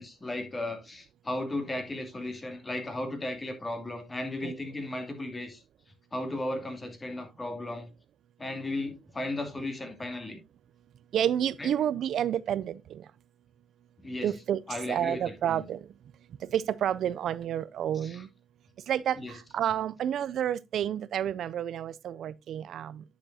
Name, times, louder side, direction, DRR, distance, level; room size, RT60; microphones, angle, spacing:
voice 1, 0.0-5.6 6.1-7.9 8.4-10.4 11.6-11.7 14.0-14.3 14.7-15.7 18.0-18.2 19.1-19.4, left 1 dB, 25° left, 2.7 m, -35 dB
voice 2, 11.1-13.0 14.2-14.6 14.9-15.8 16.5-18.3 18.9-23.0, right 10 dB, 70° right, 0.4 m, -30 dB
9.9 x 7.2 x 2.7 m
cardioid pair, 90°, 0 cm